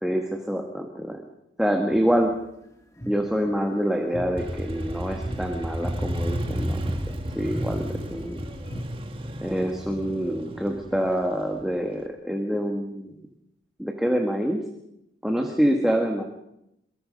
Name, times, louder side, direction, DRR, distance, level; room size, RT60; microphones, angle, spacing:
voice 1, 0.0-1.3 1.6-2.3 3.1-7.0 7.3-8.4 9.4-13.3 13.8-14.6 15.2-16.2, equal, ahead, 2 dB, 1.7 m, -26 dB
sound 1, 1.9-2.3 2.6-8.8, equal, 15° left, 1.9 m, -41 dB
Motorcycle, 4.4-12.0, equal, 30° right, 1.7 m, -32 dB
23.5 x 23.5 x 5.3 m, 0.82 s
head